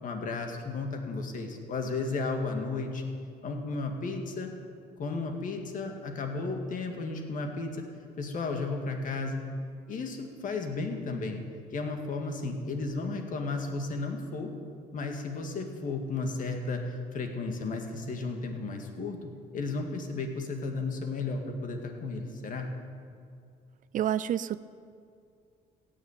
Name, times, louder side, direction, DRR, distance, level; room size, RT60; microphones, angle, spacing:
voice 1, 0.0-3.0 3.4-4.5 5.0-7.8 8.2-9.4 9.9-11.4 11.7-14.5 14.9-22.7, left 3 dB, 50° left, 4 dB, 2.1 m, -34 dB
voice 2, 23.9-24.6, right 11 dB, 50° right, 16 dB, 0.5 m, -28 dB
16.0 x 7.5 x 9.0 m, 2.3 s
cardioid pair, 110°, 17 cm